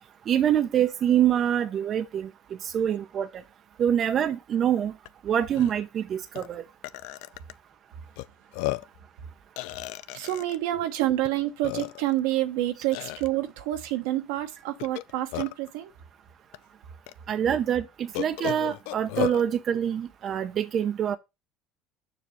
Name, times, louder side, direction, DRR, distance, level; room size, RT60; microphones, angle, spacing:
voice 1, 0.3-2.3 2.6-3.3 3.8-4.9 5.2-6.6 10.7-10.8 17.3-21.2, right 9 dB, 45° right, 0.7 m, -25 dB
Burping eructation, 5.1-5.2 5.5-5.7 6.4-6.5 6.8-7.5 8.2-8.3 8.5-9.0 9.6-10.6 11.2-11.3 11.6-12.2 12.9-13.3 14.8-15.7 16.5-16.6 17.1-17.2 18.1-19.4, left 19 dB, 80° left, 0.4 m, -33 dB
voice 2, 10.1-15.9, right 15 dB, 85° right, 1.1 m, -28 dB
6.9 x 2.8 x 5.7 m
supercardioid pair, 95°, 0 cm